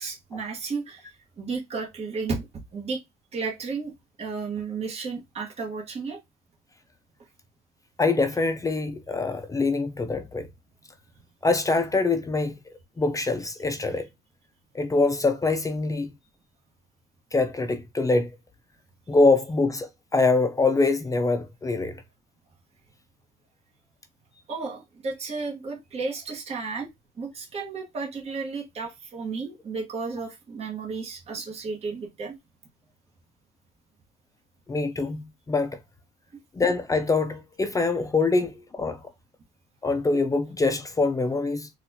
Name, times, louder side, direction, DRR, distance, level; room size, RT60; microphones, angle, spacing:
voice 1, 0.0-2.5 2.7-3.0 3.3-3.9 4.2-6.2 24.5-26.9 27.2-32.3, right 4 dB, 40° right, 1.3 m, -33 dB
voice 2, 8.0-10.5 11.4-12.6 13.0-14.1 14.7-16.1 17.3-18.3 19.1-22.0 34.7-35.8 36.6-39.0 39.8-41.7, left 3 dB, 20° left, 0.5 m, -24 dB
4.1 x 2.4 x 2.7 m
cardioid pair, 110°, 17 cm